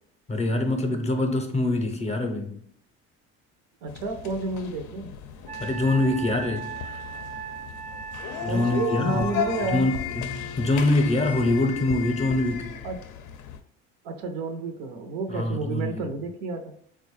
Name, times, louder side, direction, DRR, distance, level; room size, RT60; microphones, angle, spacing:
voice 1, 0.3-2.6 5.6-6.9 8.4-9.3 9.7-12.7 15.3-16.0, left 2 dB, 20° left, 4 dB, 0.6 m, -24 dB
voice 2, 3.8-5.1 8.4-9.9 12.8-13.1 14.0-16.7, right 3 dB, 80° right, 5 dB, 0.6 m, -30 dB
sound 1, 3.9-13.6, left 8 dB, 65° left, 0.5 m, -35 dB
Wind instrument woodwind instrument, 5.5-9.7, right 6 dB, 25° right, 0.4 m, -38 dB
3.8 x 2.2 x 3.1 m, 0.66 s
supercardioid pair, 80°, 32 cm